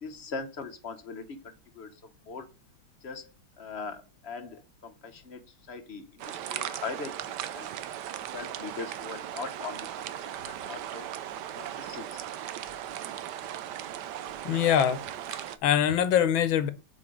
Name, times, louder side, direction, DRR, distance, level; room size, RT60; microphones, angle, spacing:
voice 1, 0.0-2.5 3.0-7.2 7.5-7.7 8.3-9.9 10.2-10.3 10.6-11.1 11.5-12.2, left 4 dB, 50° left, 0.8 m, -40 dB
sound 1, 6.2-15.6, right 11 dB, 70° right, 1.1 m, -38 dB
voice 2, 14.4-15.0 15.3-16.7, left 9 dB, 80° left, 1.6 m, -24 dB
7.1 x 4.7 x 5.0 m
omnidirectional pair, 2.1 m